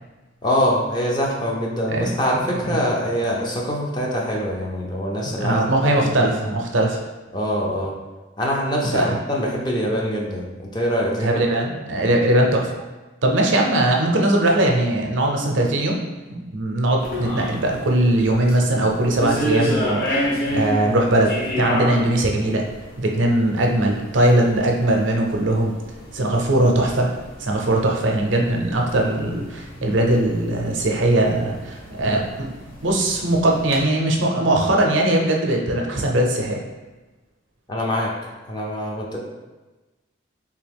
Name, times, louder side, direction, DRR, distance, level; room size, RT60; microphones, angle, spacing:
voice 1, 0.4-5.6 6.0-6.3 7.3-7.9 8.4-11.7 37.7-38.1 38.5-39.2, equal, 20° left, -2 dB, 0.5 m, -24 dB
voice 2, 5.2-7.0 8.9-9.2 11.2-12.8 13.2-16.0 16.3-22.6 23.0-25.7 26.1-32.5 32.8-36.6, right 1 dB, 70° right, 1 dB, 0.6 m, -20 dB
sound 1, 17.0-33.8, equal, 45° left, 0.9 m, -31 dB
3.4 x 2.8 x 3.4 m, 1.2 s
head